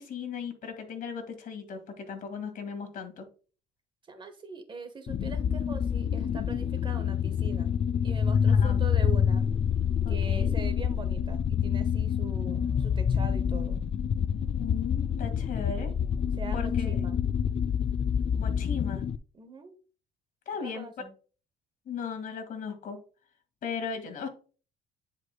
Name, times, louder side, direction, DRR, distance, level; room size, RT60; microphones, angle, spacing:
voice 1, 0.0-3.3 8.5-8.8 10.0-10.5 14.6-15.9 16.5-17.1 18.4-19.0 20.5-20.9 21.9-23.0 23.6-24.3, left 6 dB, 55° left, 6 dB, 1.9 m, -37 dB
voice 2, 4.1-7.7 8.0-9.5 10.1-13.8 16.4-17.2 19.3-19.7 20.5-21.1, right 4 dB, 30° right, 8 dB, 1.2 m, -42 dB
sound 1, 5.1-19.2, left 7 dB, 35° left, 0.4 m, -27 dB
9.8 x 4.9 x 2.2 m, 0.38 s
cardioid pair, 110°, 17 cm